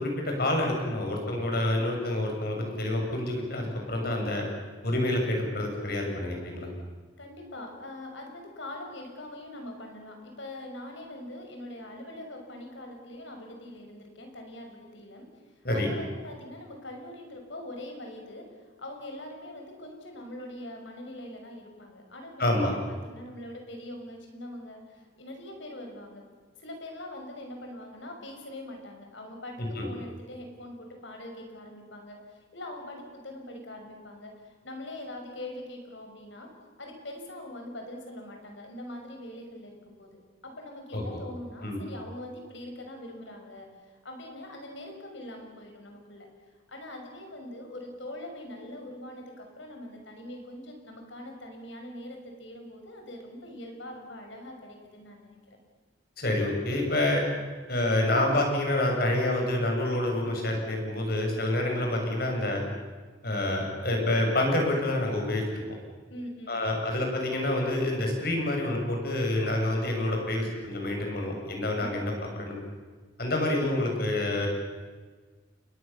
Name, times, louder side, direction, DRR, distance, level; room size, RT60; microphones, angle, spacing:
voice 1, 0.0-4.5 4.8-6.7 15.6-15.9 22.4-22.8 29.6-29.9 40.9-41.0 41.6-41.8 56.2-57.2 57.7-62.6 63.2-65.6 66.5-72.6 73.2-74.5, left 1 dB, 50° left, 1 dB, 7.1 m, -27 dB
voice 2, 7.2-15.3 15.6-18.4 18.8-26.3 26.6-36.5 36.8-46.3 46.7-55.6 66.1-66.6 71.8-71.9, left 1 dB, 75° left, 3 dB, 6.4 m, -43 dB
29.5 x 22.0 x 7.1 m, 1.4 s
head